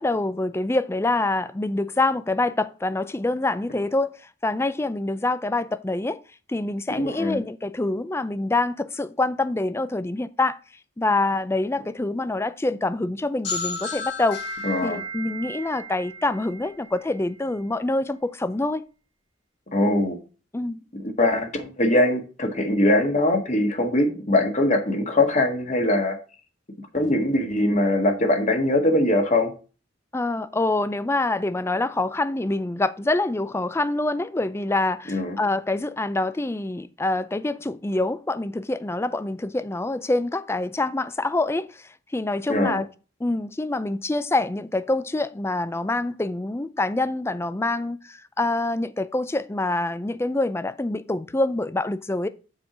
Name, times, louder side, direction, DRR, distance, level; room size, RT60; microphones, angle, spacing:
voice 1, 0.0-6.2 6.5-10.6 11.0-14.4 14.8-18.8 20.5-20.8 30.1-42.9 43.2-52.3, left 2 dB, 15° left, 0.4 m, -26 dB
voice 2, 6.9-7.4 14.6-15.0 19.7-20.2 20.9-26.2 26.9-29.5 35.1-35.4 42.5-42.8, left 1 dB, 40° left, 1.6 m, -22 dB
sound 1, 13.4-17.1, left 2 dB, 70° left, 4.5 m, -33 dB
7.3 x 4.6 x 5.0 m
head